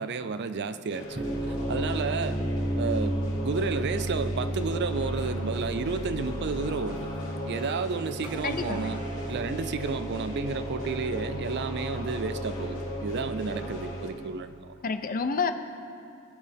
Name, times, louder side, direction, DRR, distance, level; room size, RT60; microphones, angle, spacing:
voice 1, 0.0-2.4 2.8-7.1 7.4-14.7, right 4 dB, 55° right, 12 dB, 0.5 m, -32 dB
sound 1, 0.9-14.1, equal, 75° left, 3.0 m, -39 dB
sound 2, 1.0-13.9, right 1 dB, 20° right, 1.2 m, -33 dB
voice 2, 8.4-9.0 14.8-15.5, left 5 dB, 40° left, 9 dB, 0.6 m, -29 dB
20.5 x 7.5 x 3.5 m, 2.4 s
head